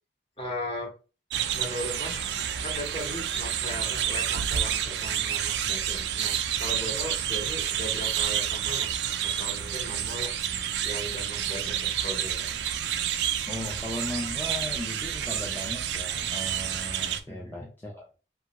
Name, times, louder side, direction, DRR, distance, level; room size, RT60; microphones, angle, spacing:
voice 1, 0.4-0.9 1.5-2.2 2.6-10.3 10.8-11.8 12.0-12.5 17.2-17.6, equal, 30° left, 0.9 m, -37 dB
sound 1, 1.3-17.2, right 9 dB, 80° right, 0.3 m, -29 dB
voice 2, 13.5-18.1, left 1 dB, 10° left, 0.4 m, -37 dB
2.9 x 2.3 x 2.9 m
head